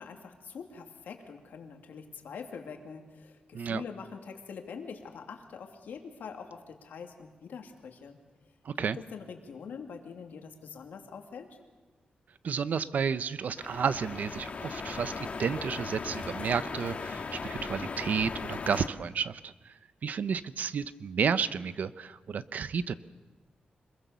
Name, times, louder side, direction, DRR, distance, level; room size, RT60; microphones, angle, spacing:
voice 1, 0.0-8.2 8.9-11.6, left 6 dB, 85° left, 3 dB, 2.7 m, -44 dB
voice 2, 8.6-9.0 12.4-22.9, right 6 dB, 65° right, 14 dB, 0.8 m, -32 dB
sound 1, 13.6-18.9, left 4 dB, 45° left, 1.8 m, -38 dB
26.0 x 21.5 x 7.0 m, 1.3 s
wide cardioid pair, 120°, 3 cm